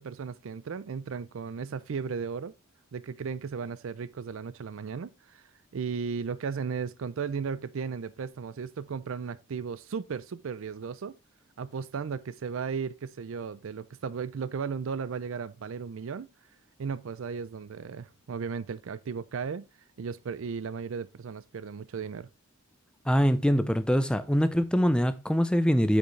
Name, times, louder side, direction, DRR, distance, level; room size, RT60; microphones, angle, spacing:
voice 1, 0.0-2.5 2.9-5.4 5.7-11.2 11.6-16.3 16.8-19.6 20.0-22.3, right 6 dB, 65° right, 0.4 m, -35 dB
voice 2, 23.1-26.0, equal, 5° left, 0.5 m, -24 dB
8.5 x 5.3 x 3.1 m
head